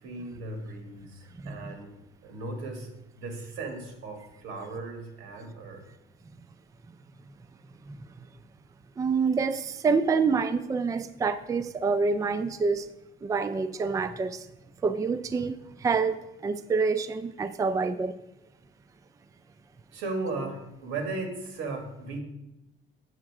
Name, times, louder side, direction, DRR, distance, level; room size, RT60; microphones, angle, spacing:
voice 1, 0.0-1.9 2.2-5.8 19.9-22.2, right 3 dB, 80° right, 5 dB, 1.9 m, -36 dB
voice 2, 1.4-1.7 7.9-8.0 9.0-12.9 13.2-14.5 14.8-18.2, right 4 dB, 15° right, 13 dB, 0.4 m, -27 dB
7.8 x 7.3 x 4.8 m, 0.94 s
cardioid pair, 120°, 20 cm